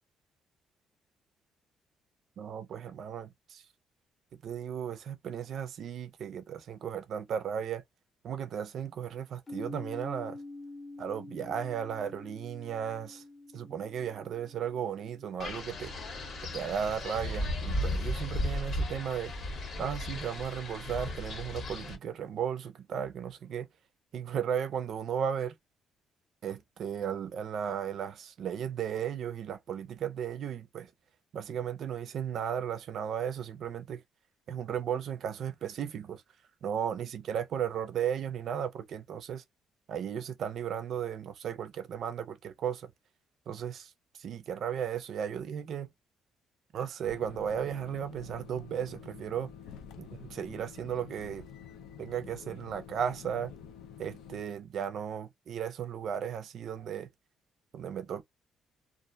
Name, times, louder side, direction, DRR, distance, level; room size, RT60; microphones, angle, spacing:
voice 1, 2.4-3.6 4.4-7.8 8.2-10.4 11.0-13.2 13.5-15.9 16.4-19.3 19.8-23.7 24.1-25.5 26.4-30.9 31.3-34.0 34.5-36.2 36.6-39.4 39.9-42.9 43.5-43.9 44.2-45.9 46.7-49.5 50.0-51.5 52.0-53.5 54.0-57.1 57.7-58.2, right 8 dB, 50° right, 0.4 m, -35 dB
sound 1, 9.5-17.3, left 2 dB, 20° left, 0.5 m, -48 dB
Wind, 15.4-22.0, left 1 dB, 40° left, 0.8 m, -35 dB
sound 2, 47.0-54.4, left 8 dB, 80° left, 0.4 m, -48 dB
2.4 x 2.1 x 2.6 m
cardioid pair, 170°, 0 cm